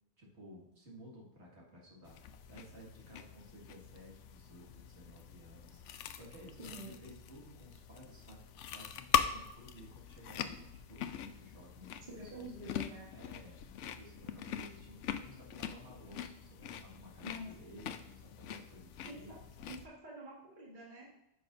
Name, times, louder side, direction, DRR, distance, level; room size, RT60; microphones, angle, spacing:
voice 1, 0.2-12.5 13.1-19.3 19.6-19.8, equal, 65° right, -3 dB, 2.2 m, -55 dB
sound 1, 2.0-19.9, left 9 dB, 75° left, 0.9 m, -42 dB
voice 2, 6.6-6.9 12.1-13.1 17.2-17.5 19.0-19.2 19.7-21.1, right 1 dB, 40° right, -4 dB, 1.7 m, -47 dB
10.0 x 6.8 x 2.6 m, 0.88 s
omnidirectional pair, 1.3 m